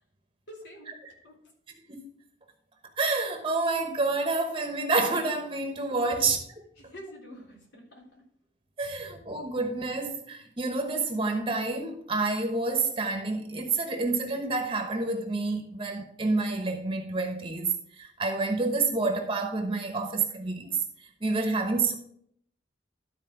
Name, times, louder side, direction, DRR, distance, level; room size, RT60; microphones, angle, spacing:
voice 1, 0.5-0.9 1.2-1.3 6.0-6.2 6.8-8.2 8.9-9.1, equal, 80° left, 3.6 m, -47 dB
voice 2, 3.0-6.4 8.8-21.9, right 3 dB, 30° right, 1.0 m, -28 dB
12.5 x 4.4 x 5.8 m
head